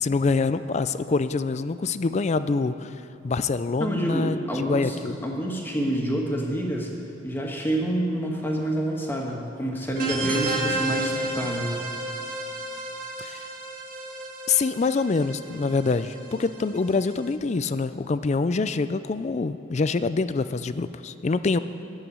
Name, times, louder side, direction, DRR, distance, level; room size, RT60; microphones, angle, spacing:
voice 1, 0.0-2.9 3.2-5.1 13.2-13.5 14.5-21.6, left 4 dB, 35° left, 13 dB, 0.4 m, -25 dB
voice 2, 3.8-5.0 5.2-6.9 7.2-11.8, right 1 dB, 10° left, -1 dB, 1.6 m, -27 dB
sound 1, 10.0-17.3, right 2 dB, 45° right, 1.3 m, -32 dB
11.0 x 8.3 x 8.6 m, 2.7 s
head